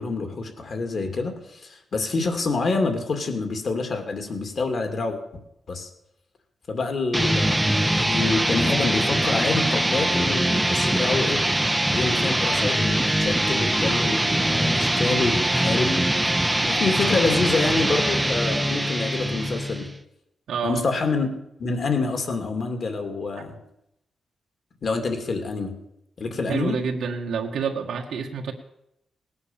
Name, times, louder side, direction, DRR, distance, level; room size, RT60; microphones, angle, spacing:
voice 1, 0.0-5.2 5.7-5.9 6.7-11.4 11.9-16.1 16.4-19.9 20.6-21.3 21.6-23.6 24.8-25.7 26.2-26.8, left 3 dB, 45° left, 6 dB, 2.4 m, -27 dB
sound 1, 7.1-20.0, right 1 dB, 5° right, 0.7 m, -22 dB
voice 2, 20.5-20.8 26.5-28.5, right 6 dB, 90° right, 1 dB, 1.8 m, -28 dB
19.0 x 9.6 x 7.3 m, 0.83 s
wide cardioid pair, 170°, 0 cm